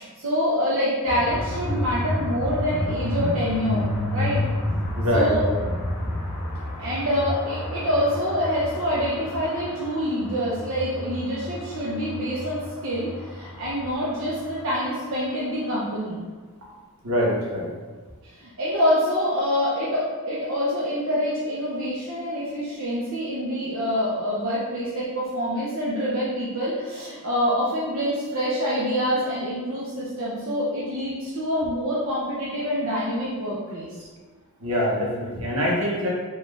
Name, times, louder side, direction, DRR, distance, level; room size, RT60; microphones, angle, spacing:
voice 1, 0.0-4.5 5.1-5.5 6.8-16.2 18.3-33.9, equal, 65° right, -7 dB, 0.6 m, -26 dB
sound 1, 1.0-14.9, left 1 dB, 5° left, 1.1 m, -30 dB
voice 2, 4.9-5.3 17.0-17.7 34.6-36.1, equal, 80° right, -4 dB, 1.0 m, -24 dB
4.1 x 2.4 x 3.2 m, 1.4 s
head